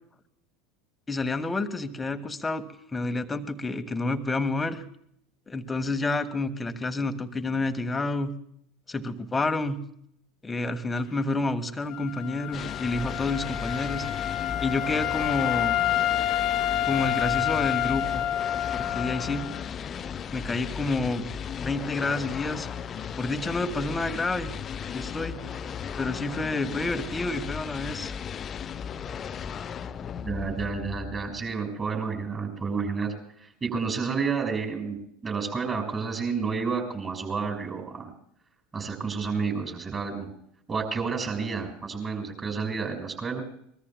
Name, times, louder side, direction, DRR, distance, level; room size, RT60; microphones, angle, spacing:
voice 1, 1.1-2.6 2.9-4.8 5.5-8.3 8.9-9.8 10.4-14.1 14.6-15.9 16.9-18.2 18.7-19.5 20.3-21.2 21.6-22.7 23.2-24.5 24.9-25.4 26.0-28.1, left 2 dB, 15° left, 8 dB, 1.4 m, -29 dB
Wind instrument woodwind instrument, 11.9-19.7, left 12 dB, 45° left, 1.2 m, -28 dB
sound 1, 12.5-31.5, left 7 dB, 30° left, 0.6 m, -36 dB
voice 2, 30.2-33.1 33.4-38.1 38.7-40.3 40.7-43.4, right 5 dB, 25° right, 3 dB, 5.9 m, -30 dB
24.5 x 22.0 x 2.3 m, 0.69 s
figure-of-eight pair, 75°, 0 cm